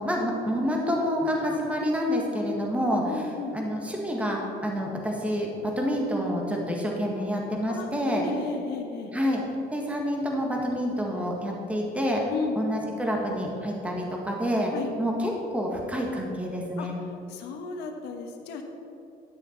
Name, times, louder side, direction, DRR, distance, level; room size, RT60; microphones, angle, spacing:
voice 1, 0.0-3.0 3.5-8.2 9.1-9.4 9.7-12.2 12.6-14.7 15.0-16.9, equal, 10° right, -1 dB, 1.6 m, -28 dB
voice 2, 2.4-3.5 7.7-9.1 12.3-12.6 14.7-15.0 16.8-16.9 17.3-18.6, left 4 dB, 90° left, 4 dB, 1.2 m, -35 dB
11.5 x 6.5 x 4.5 m, 2.9 s
cardioid pair, 110°, 17 cm